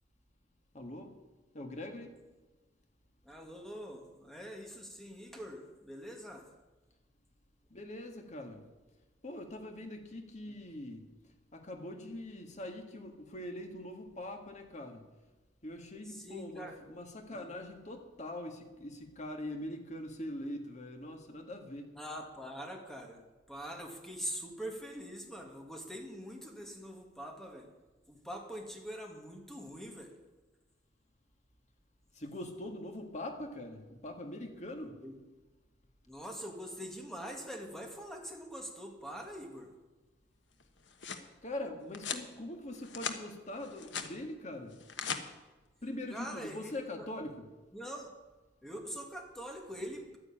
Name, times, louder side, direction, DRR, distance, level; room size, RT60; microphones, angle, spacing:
voice 1, 0.7-1.1 1.5-2.2 7.7-8.6 9.2-11.1 11.5-15.0 15.6-21.9 32.2-35.0 41.4-44.7 45.8-47.4, left 1 dB, 40° left, 4 dB, 1.9 m, -42 dB
voice 2, 3.3-6.4 10.5-10.6 16.0-16.8 17.3-17.5 22.0-23.2 23.5-27.7 28.1-30.1 35.0-35.2 36.1-39.7 46.1-47.1 47.7-48.1 48.6-50.2, equal, ahead, 2 dB, 2.1 m, -44 dB
sound 1, 40.6-41.3 41.9-42.3 42.7-43.2 43.6-44.1 44.7-45.2, left 6 dB, 80° left, 1.3 m, -39 dB
11.5 x 10.0 x 8.7 m, 1.2 s
head